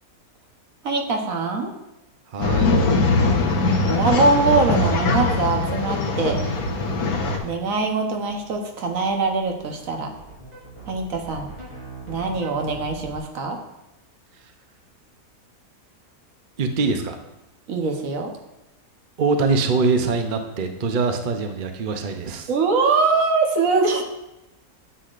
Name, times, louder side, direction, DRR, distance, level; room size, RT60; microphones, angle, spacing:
voice 1, 0.8-1.7 3.9-6.4 7.4-10.1 10.9-11.5 12.1-13.6 17.7-18.3 22.5-24.0, right 3 dB, 65° right, 3 dB, 1.4 m, -22 dB
voice 2, 2.3-2.7 16.6-17.2 19.2-22.5, right 4 dB, 45° right, 5 dB, 0.7 m, -23 dB
Male speech man speaking / Chatter / Rattle, 2.4-7.4, left 3 dB, 85° left, 1.6 m, -21 dB
sound 1, 6.7-13.2, right 3 dB, 25° right, 3.5 m, -43 dB
9.8 x 8.2 x 2.5 m, 0.96 s
omnidirectional pair, 1.6 m